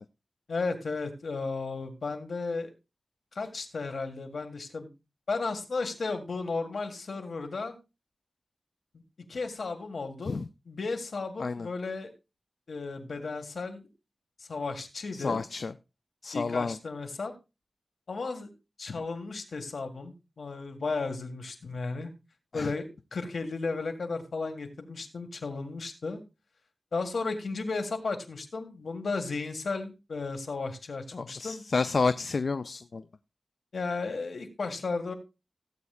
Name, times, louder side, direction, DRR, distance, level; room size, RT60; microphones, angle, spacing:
voice 1, 0.5-2.7 3.3-4.9 5.3-7.8 9.3-10.4 10.7-12.1 12.7-13.9 14.4-15.4 16.3-17.3 18.1-18.5 18.8-22.1 22.5-26.2 26.9-31.6 33.7-35.1, left 3 dB, 85° left, 6 dB, 1.8 m, -34 dB
voice 2, 15.1-15.7 16.2-16.8 22.5-22.7 31.1-33.0, left 4 dB, 70° left, 13 dB, 0.4 m, -30 dB
17.0 x 8.1 x 2.4 m, 0.26 s
wide cardioid pair, 85°, 0 cm